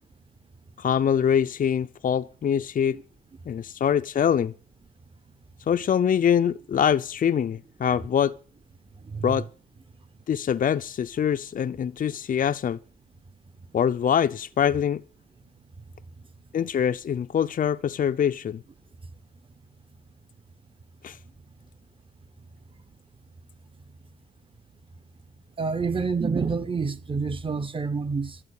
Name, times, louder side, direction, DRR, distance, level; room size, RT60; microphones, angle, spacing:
voice 1, 0.8-3.0 3.5-4.5 5.7-8.3 9.2-9.5 10.3-12.8 13.7-15.0 16.5-18.6 21.0-21.2, left 8 dB, 45° left, 0.6 m, -24 dB
voice 2, 9.0-9.4 25.6-28.4, right 4 dB, 25° right, 1.3 m, -28 dB
12.5 x 8.9 x 8.3 m
cardioid pair, 90°, 20 cm